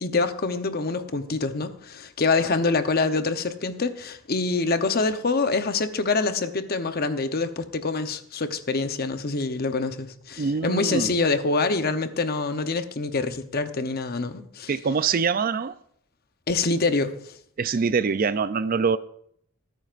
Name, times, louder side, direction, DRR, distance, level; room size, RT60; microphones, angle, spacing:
voice 1, 0.0-14.7 16.5-17.3, left 3 dB, 45° left, 0.8 m, -25 dB
voice 2, 10.4-11.1 14.7-15.8 17.6-19.0, right 5 dB, 45° right, 0.4 m, -24 dB
24.0 x 9.2 x 2.5 m
head